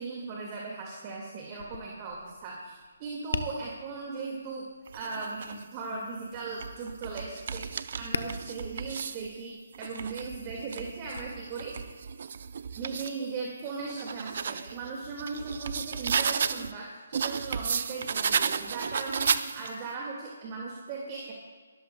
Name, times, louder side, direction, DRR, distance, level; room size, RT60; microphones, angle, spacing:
voice 1, 0.0-11.8 12.7-21.3, right 4 dB, 30° right, -1 dB, 1.8 m, -38 dB
Tap, 1.5-11.2, left 4 dB, 70° left, 0.8 m, -43 dB
sound 1, 4.9-5.6 6.3-9.3 9.7-13.2 13.7-16.7 17.1-19.9, right 6 dB, 55° right, 0.6 m, -33 dB
25.5 x 13.0 x 2.2 m, 1.5 s
figure-of-eight pair, 145°, 0 cm